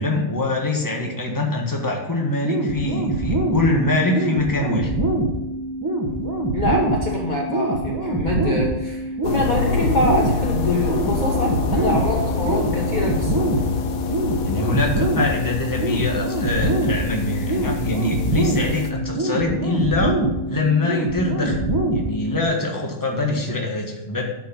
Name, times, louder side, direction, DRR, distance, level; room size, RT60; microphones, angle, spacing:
voice 1, 0.0-4.9 14.4-20.2 20.5-21.7 21.9-24.2, left 2 dB, 15° left, 0 dB, 1.5 m, -23 dB
sound 1, 2.4-22.4, right 1 dB, 15° right, 1.3 m, -24 dB
voice 2, 6.5-13.4, left 1 dB, 35° left, -2 dB, 1.3 m, -24 dB
sound 2, 9.2-18.9, left 5 dB, 75° left, 1.3 m, -27 dB
11.5 x 5.3 x 5.4 m, 0.94 s
omnidirectional pair, 1.5 m